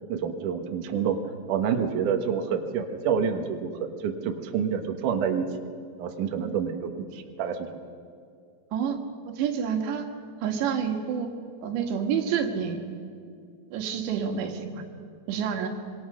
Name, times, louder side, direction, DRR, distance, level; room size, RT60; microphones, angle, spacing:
voice 1, 0.1-1.2 1.5-5.5 6.0-7.8, right 7 dB, 60° right, 4 dB, 2.5 m, -28 dB
voice 2, 9.3-10.1 10.4-11.3 11.6-12.8 13.7-14.8 15.3-15.7, right 7 dB, 90° right, 4 dB, 3.9 m, -28 dB
25.5 x 23.5 x 6.5 m, 2.3 s
omnidirectional pair, 4.9 m